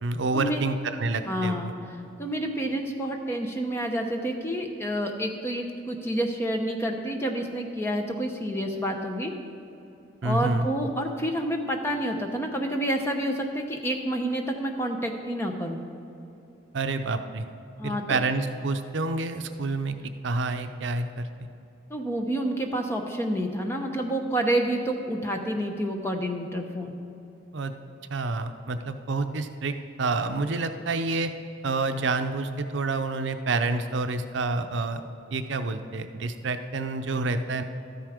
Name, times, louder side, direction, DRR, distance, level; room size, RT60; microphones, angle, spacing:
voice 1, 0.0-1.7 10.2-10.7 16.7-17.4 17.8-19.9 20.2-21.3 27.5-27.7 28.1-31.3 31.6-35.0 35.3-37.6, right 3 dB, 70° right, 8 dB, 0.6 m, -28 dB
voice 2, 1.3-1.7 2.2-9.3 10.2-15.8 17.8-18.2 21.9-27.0, right 1 dB, 10° left, 3 dB, 0.9 m, -29 dB
12.5 x 9.3 x 5.0 m, 2.8 s
head